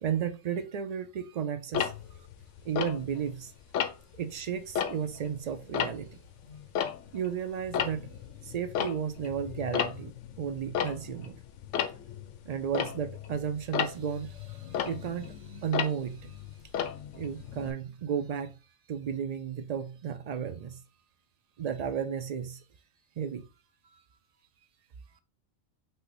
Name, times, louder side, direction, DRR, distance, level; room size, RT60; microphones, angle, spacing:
voice 1, 0.0-1.9 2.6-3.5 4.2-6.2 7.1-8.1 8.4-11.4 12.5-16.4 17.1-18.5 18.9-20.8 21.6-22.6 23.2-23.5, right 8 dB, 80° right, 0.3 m, -33 dB
Tick-tock, 1.7-3.4 3.7-4.2 4.6-7.3 7.6-17.7, left 8 dB, 80° left, 0.9 m, -34 dB
5.6 x 2.1 x 4.1 m
omnidirectional pair, 1.2 m